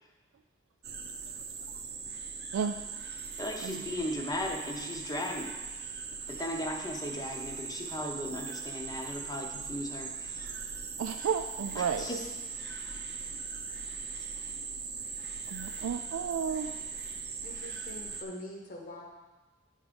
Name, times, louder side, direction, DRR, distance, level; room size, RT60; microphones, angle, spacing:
sound 1, 0.8-18.2, right 5 dB, 55° right, 0.7 m, -40 dB
voice 1, 3.4-5.5 6.3-10.5 11.7-12.2 12.7-13.0, left 1 dB, 20° left, 1 dB, 0.8 m, -37 dB
voice 2, 11.0-12.1 15.5-16.7, right 7 dB, 85° right, 8 dB, 0.3 m, -32 dB
voice 3, 17.4-19.0, left 1 dB, 45° left, -1 dB, 0.9 m, -44 dB
9.8 x 3.6 x 5.2 m, 1.2 s
head